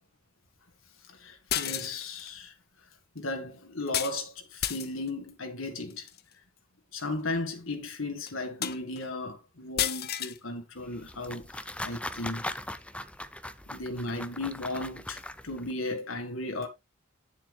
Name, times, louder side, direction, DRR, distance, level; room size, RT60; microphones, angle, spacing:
voice 1, 1.2-2.5 3.2-6.1 6.9-12.4 13.7-16.7, left 2 dB, 80° left, 2.0 m, -35 dB
sound 1, 1.5-2.3 3.9-4.2 4.6-5.1 5.9-6.2 7.0-7.1 7.5-7.6 8.3-8.4 8.6-9.1 9.8-10.4, left 11 dB, 50° left, 0.8 m, -31 dB
sound 2, 10.8-15.7, left 1 dB, 5° left, 0.5 m, -40 dB
9.5 x 7.2 x 3.3 m
head